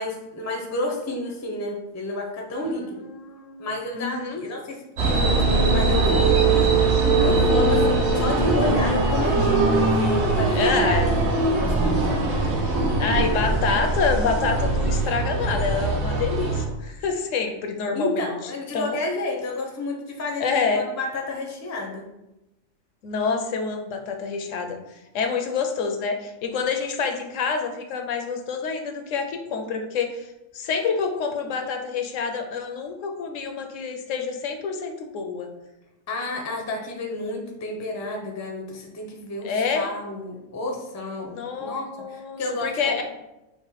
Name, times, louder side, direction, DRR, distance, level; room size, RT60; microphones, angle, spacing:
voice 1, 0.0-3.0 3.6-6.8 7.2-10.7 11.0-12.2 17.9-22.0 36.1-43.0, left 2 dB, 20° left, 1 dB, 0.4 m, -31 dB
voice 2, 3.2-3.7 4.0-4.4 10.5-11.3 12.5-18.3 18.7-19.0 20.4-20.9 23.0-30.3 30.5-35.5 39.4-39.9 41.3-43.0, left 5 dB, 75° left, 4 dB, 0.9 m, -27 dB
sound 1, 5.0-16.6, right 3 dB, 60° right, 1.0 m, -21 dB
4.8 x 2.1 x 4.0 m, 0.94 s
omnidirectional pair, 1.3 m